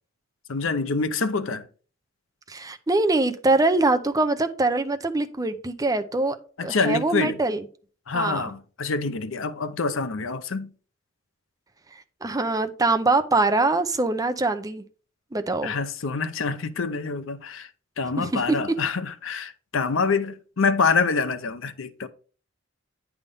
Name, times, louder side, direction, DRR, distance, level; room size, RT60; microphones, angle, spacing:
voice 1, 0.5-1.7 6.6-7.4 8.1-10.7 15.6-17.7 18.0-22.1, left 4 dB, 75° left, 0.7 m, -26 dB
voice 2, 2.5-6.4 6.6-7.6 8.1-8.5 12.2-14.8 15.3-15.7 18.2-18.6, right 2 dB, 20° right, 0.6 m, -23 dB
9.5 x 3.5 x 5.4 m
head